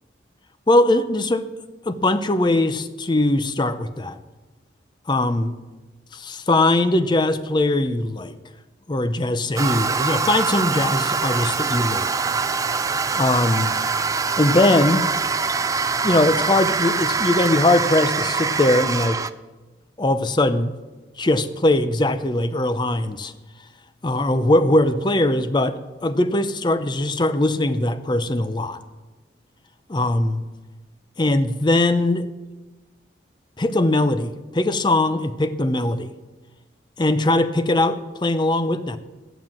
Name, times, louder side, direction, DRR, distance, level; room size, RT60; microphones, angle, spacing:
voice 1, 0.7-1.5 1.9-4.2 5.1-5.6 6.1-8.3 8.9-12.1 13.1-13.8 14.4-15.1 16.0-19.2 20.0-20.7 21.2-23.3 24.0-28.8 29.9-30.4 31.2-32.3 33.6-36.1 37.0-39.0, left 2 dB, 25° left, 10 dB, 0.6 m, -20 dB
Toilet flush, 9.6-19.3, right 4 dB, 20° right, 0.3 m, -23 dB
12.5 x 9.1 x 7.4 m, 1.2 s
head